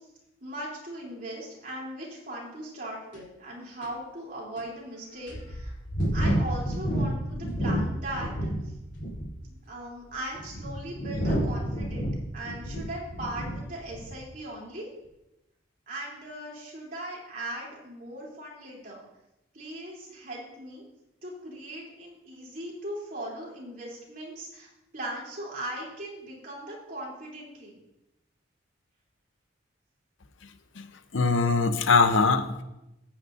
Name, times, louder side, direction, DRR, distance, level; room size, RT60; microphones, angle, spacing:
voice 1, 0.4-5.7 6.1-8.7 9.5-12.1 12.3-14.9 15.9-19.0 19.5-20.8 21.2-24.7 24.9-27.8, right 1 dB, 45° right, -4 dB, 3.2 m, -39 dB
sound 1, 3.1-3.2 3.8-3.9 4.6-4.7 5.3-8.6 8.9-9.4 10.1-13.6 13.9-14.2, equal, 65° left, 3.2 m, -30 dB
voice 2, 31.1-32.6, left 4 dB, 80° left, 9 dB, 0.8 m, -22 dB
14.0 x 8.8 x 2.6 m, 0.91 s
head